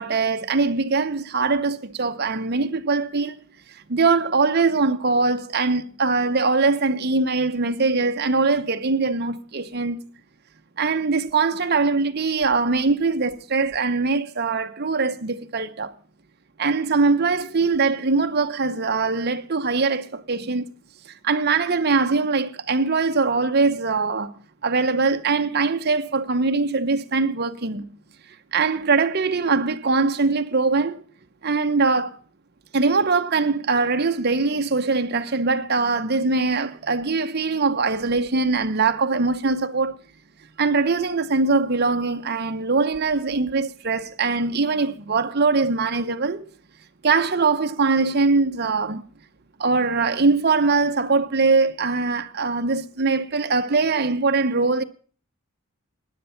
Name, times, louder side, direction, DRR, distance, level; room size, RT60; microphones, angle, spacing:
voice 1, 0.0-3.4 3.9-10.0 10.8-15.9 16.6-20.7 21.2-24.3 24.6-27.8 28.5-31.0 31.4-32.1 32.7-40.0 40.6-46.5 47.0-49.0 49.6-54.8, right 4 dB, 45° right, 0.9 m, -22 dB
17.0 x 10.5 x 5.7 m
head